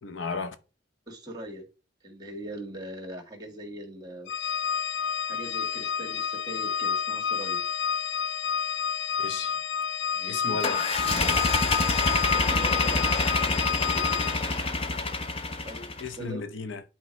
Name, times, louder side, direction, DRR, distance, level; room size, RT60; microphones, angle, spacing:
voice 1, 0.0-0.6 9.2-9.6 10.3-10.8 16.0-16.8, left 4 dB, 85° left, 0.8 m, -34 dB
voice 2, 1.1-1.6 2.0-4.3 4.9-7.6 10.1-10.6 12.3-14.2 15.6-15.9 16.2-16.5, right 1 dB, 20° right, 1.9 m, -41 dB
Organ, 4.3-14.7, left 7 dB, 65° left, 0.4 m, -30 dB
sound 1, 10.6-16.1, left 3 dB, 30° left, 0.8 m, -26 dB
10.5 x 4.2 x 3.2 m
head